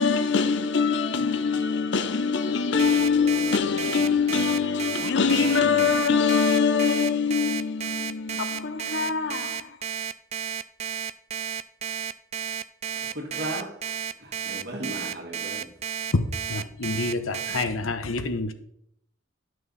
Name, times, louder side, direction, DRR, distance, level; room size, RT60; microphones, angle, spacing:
voice 1, 0.0-9.8, left 5 dB, 60° left, 0.6 m, -23 dB
Alarm, 2.8-17.6, right 8 dB, 30° right, 0.3 m, -32 dB
voice 2, 13.1-13.7 14.2-15.7, right 1 dB, 55° right, 2.0 m, -35 dB
voice 3, 16.5-18.5, left 3 dB, 85° left, 0.9 m, -27 dB
11.0 x 6.2 x 4.1 m
head